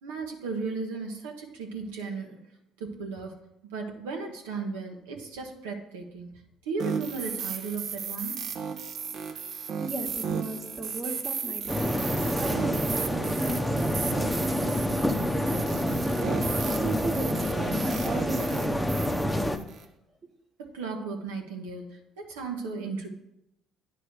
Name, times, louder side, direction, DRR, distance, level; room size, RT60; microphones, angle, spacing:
voice 1, 0.0-2.4 2.8-3.3 3.7-6.3 6.7-8.4 20.6-23.1, right 4 dB, 90° right, 1 dB, 1.0 m, -35 dB
sound 1, 6.8-19.8, right 6 dB, 60° right, 0.8 m, -35 dB
voice 2, 9.8-15.9 16.7-19.9, right 2 dB, 35° right, -4 dB, 1.3 m, -38 dB
sound 2, 11.7-19.6, left 1 dB, 5° left, 0.8 m, -27 dB
9.5 x 3.3 x 6.5 m, 0.83 s
hypercardioid pair, 60°, 0 cm